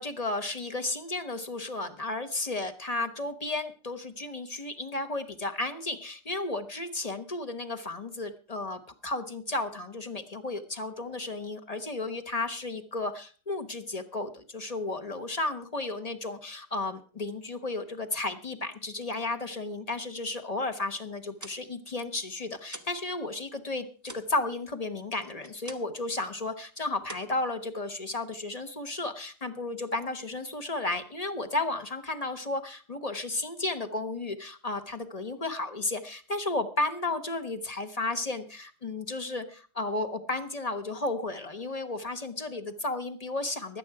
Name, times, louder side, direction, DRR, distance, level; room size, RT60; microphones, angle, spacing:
voice 1, 0.0-43.8, left 2 dB, 30° left, 7 dB, 0.7 m, -33 dB
sound 1, 21.2-23.1 23.4-26.1 26.4-26.7 27.0-28.1, right 2 dB, 15° right, 0.6 m, -47 dB
16.5 x 11.0 x 4.8 m, 0.39 s
omnidirectional pair, 2.4 m